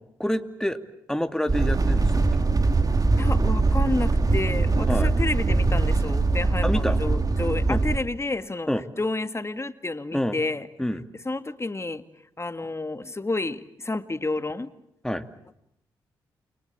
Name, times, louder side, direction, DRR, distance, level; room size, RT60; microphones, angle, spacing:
voice 1, 0.2-0.8 1.1-2.4 4.9-5.1 6.6-7.0 7.7-7.8 8.7-8.8 10.1-10.4 10.8-11.0 15.0-15.3, left 1 dB, 5° left, 8 dB, 2.6 m, -27 dB
sound 1, 1.5-8.0, right 3 dB, 40° right, 2.5 m, -22 dB
voice 2, 3.2-8.7 9.0-10.7 11.2-12.0 12.4-14.7, left 2 dB, 25° left, 10 dB, 2.1 m, -30 dB
29.0 x 22.5 x 8.5 m, 0.78 s
hypercardioid pair, 40°, 10 cm